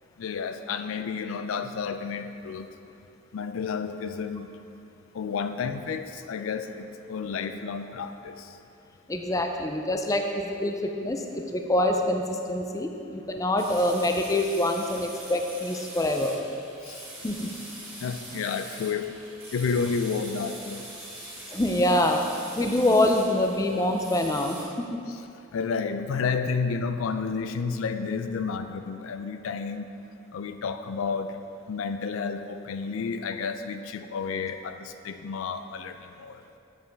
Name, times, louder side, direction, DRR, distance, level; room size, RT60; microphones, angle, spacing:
voice 1, 0.2-2.7 3.3-4.5 5.1-8.5 16.8-17.0 18.0-19.1 19.5-20.9 25.5-29.9 30.3-31.3 31.7-36.4, left 5 dB, 85° left, 9 dB, 0.4 m, -31 dB
voice 2, 9.1-16.4 17.2-17.5 21.5-22.3 22.6-25.0, left 1 dB, 15° left, 4 dB, 0.4 m, -25 dB
sound 1, 13.6-24.6, right 1 dB, 10° right, 1.7 m, -43 dB
7.9 x 7.2 x 3.3 m, 2.6 s
head